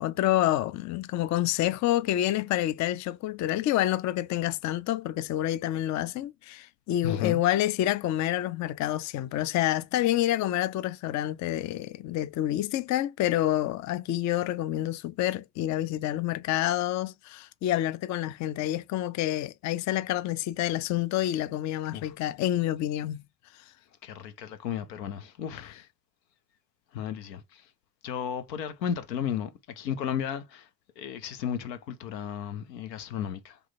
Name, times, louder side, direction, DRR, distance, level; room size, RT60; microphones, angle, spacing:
voice 1, 0.0-23.2, left 13 dB, 40° left, 0.4 m, -28 dB
voice 2, 7.0-7.4 21.9-22.1 24.0-25.9 26.9-27.6 28.0-30.7 31.0-33.6, left 8 dB, 85° left, 0.8 m, -34 dB
3.4 x 3.1 x 4.0 m
hypercardioid pair, 55°, 49 cm